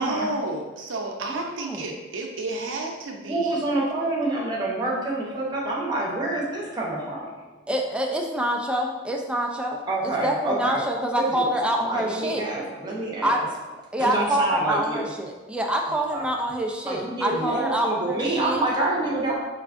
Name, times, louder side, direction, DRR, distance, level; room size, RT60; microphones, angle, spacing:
voice 1, 0.0-3.6, right 2 dB, 80° right, 2 dB, 0.6 m, -31 dB
voice 2, 1.3-1.8 7.7-12.4 13.2-13.4 13.9-18.6, right 1 dB, 5° right, 1 dB, 0.3 m, -26 dB
voice 3, 3.3-7.3 9.9-13.5 14.0-15.0 15.9-16.3 16.8-19.3, right 2 dB, 20° right, -4 dB, 0.8 m, -27 dB
4.5 x 3.2 x 2.5 m, 1.2 s
head